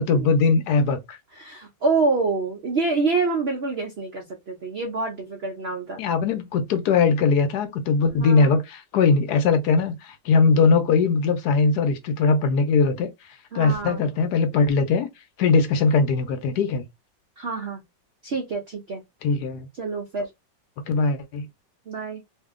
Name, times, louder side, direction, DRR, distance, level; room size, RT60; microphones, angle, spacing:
voice 1, 0.0-1.2 6.0-13.1 13.5-15.1 15.4-16.8 19.2-19.7 20.9-21.5, left 4 dB, 70° left, 1.0 m, -20 dB
voice 2, 1.3-6.0 8.1-8.6 13.5-14.0 17.4-17.8 18.2-19.0 19.8-20.3 21.9-22.2, right 3 dB, 85° right, 0.5 m, -27 dB
2.7 x 2.6 x 3.5 m
omnidirectional pair, 2.0 m